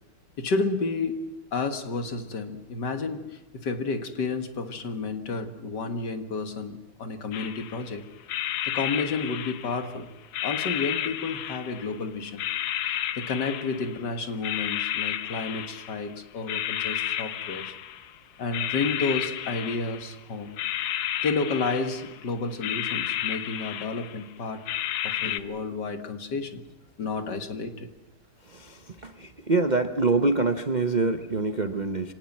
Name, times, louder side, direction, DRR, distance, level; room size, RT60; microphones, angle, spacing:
voice 1, 0.4-8.1 8.6-10.1 10.4-12.5 13.2-17.7 18.4-20.6 21.2-24.7 25.0-26.6 27.0-27.9, left 4 dB, 55° left, 8 dB, 2.2 m, -31 dB
sound 1, 7.3-7.9 8.3-9.9 10.3-12.0 12.4-14.0 14.4-16.1 16.5-18.2 18.5-20.2 20.6-22.2 22.6-24.2 24.7-25.4, left 12 dB, 85° left, 1.9 m, -32 dB
voice 2, 28.5-32.1, right 3 dB, 50° right, 8 dB, 0.5 m, -25 dB
25.5 x 18.5 x 7.4 m, 1.0 s
omnidirectional pair, 2.4 m